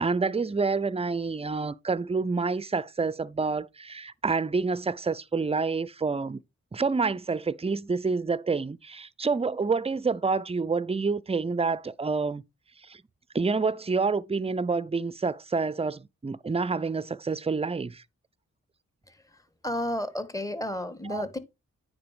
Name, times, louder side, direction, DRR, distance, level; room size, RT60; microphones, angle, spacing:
voice 1, 0.0-6.4 6.7-12.4 12.8-13.0 13.3-18.0 21.1-21.3, right 4 dB, 20° right, 0.5 m, -28 dB
voice 2, 19.1-21.4, left 1 dB, 10° left, 1.4 m, -33 dB
9.4 x 4.0 x 5.0 m
cardioid pair, 55°, 29 cm